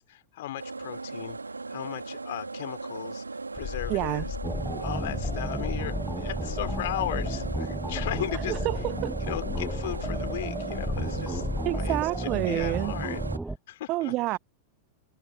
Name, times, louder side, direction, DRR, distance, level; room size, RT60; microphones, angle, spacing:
voice 1, 0.0-1.4 1.7-3.2 3.5-4.4 4.8-8.7 9.2-13.2 13.7-14.4, left 14 dB, 55° left, 3.0 m, -37 dB
sound 1, 0.6-13.4, right 3 dB, 80° right, 2.8 m, -38 dB
sound 2, 3.6-12.0, left 9 dB, 25° left, 3.7 m, -37 dB
voice 2, 3.9-4.3 8.5-9.2 11.6-12.9 13.9-14.4, right 19 dB, 40° right, 1.4 m, -28 dB
sound 3, 4.4-13.6, right 2 dB, 5° right, 6.6 m, -33 dB
figure-of-eight pair, 90°, 0 cm